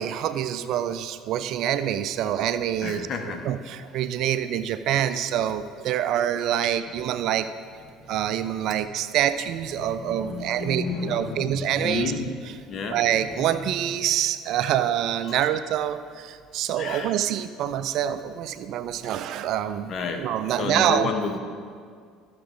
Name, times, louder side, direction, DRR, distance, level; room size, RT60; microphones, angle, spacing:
voice 1, 0.0-3.1 3.5-7.5 8.1-12.1 12.9-21.1, right 10 dB, 60° right, 12 dB, 0.4 m, -26 dB
voice 2, 2.8-3.5 7.8-8.3 8.7-8.8 9.6-12.2 12.7-13.6 15.3-15.5 16.8-17.2 19.9-20.3 20.6-21.4, left 4 dB, 50° left, 4 dB, 1.2 m, -32 dB
13.5 x 6.8 x 4.0 m, 2.1 s
hypercardioid pair, 60°, 0 cm